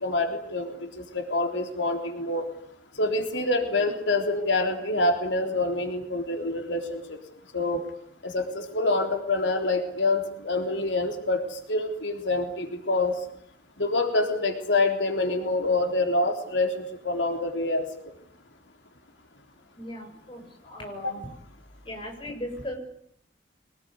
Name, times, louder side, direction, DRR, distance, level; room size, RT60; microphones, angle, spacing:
voice 1, 0.0-2.5 3.0-7.2 7.5-7.8 8.2-13.2 13.8-17.9 21.0-21.1, left 2 dB, 85° left, 4 dB, 3.6 m, -26 dB
voice 2, 19.8-21.3 21.9-22.8, left 1 dB, 30° left, 2 dB, 6.9 m, -38 dB
24.5 x 20.0 x 9.6 m, 0.68 s
head